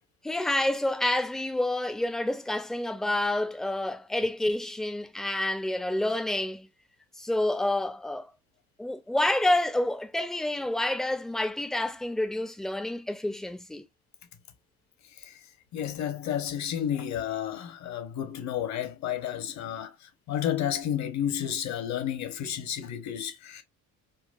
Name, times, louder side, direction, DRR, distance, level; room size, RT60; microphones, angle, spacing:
voice 1, 0.2-6.7 7.2-8.3 8.8-13.9, left 1 dB, ahead, 0.3 m, -28 dB
voice 2, 15.7-19.9 20.3-23.6, left 10 dB, 60° left, 0.9 m, -31 dB
3.9 x 2.3 x 2.3 m
cardioid pair, 110°, 33 cm